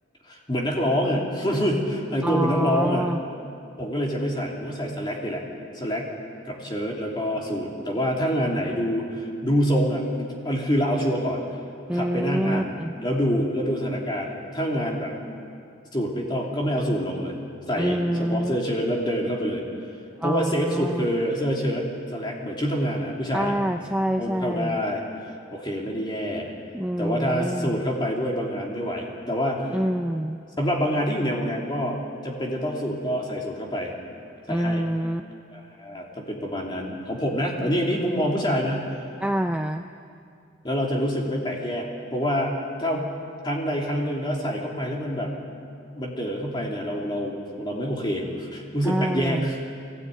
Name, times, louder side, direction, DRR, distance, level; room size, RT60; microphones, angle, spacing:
voice 1, 0.3-3.1 3.8-5.4 5.7-6.0 6.4-11.4 11.9-15.1 15.9-17.4 17.7-19.6 20.2-23.5 24.2-25.0 25.5-26.5 27.0-29.8 30.6-32.0 32.2-33.9 34.5-34.8 35.5-38.9 40.6-42.5 42.8-43.1 43.4-45.3 45.9-49.6, equal, 25° left, -1 dB, 3.0 m, -26 dB
voice 2, 2.2-3.2 11.9-12.9 17.8-18.6 20.2-21.1 23.3-24.8 26.7-27.8 29.7-30.4 34.5-35.2 39.2-39.8 48.8-49.5, right 1 dB, 5° right, 5 dB, 0.5 m, -26 dB
21.5 x 17.0 x 9.3 m, 2.4 s
head